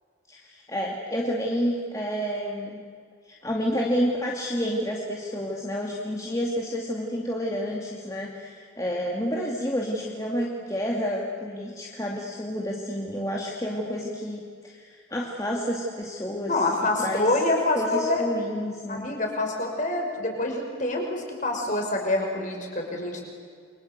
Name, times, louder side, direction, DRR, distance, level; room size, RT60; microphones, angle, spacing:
voice 1, 0.3-2.8 3.3-16.5 17.0-17.3 17.8-19.1, equal, 15° left, -2 dB, 2.6 m, -29 dB
voice 2, 16.4-18.2 18.9-23.3, left 2 dB, 40° left, 2 dB, 5.8 m, -26 dB
29.5 x 24.5 x 8.2 m, 2.1 s
head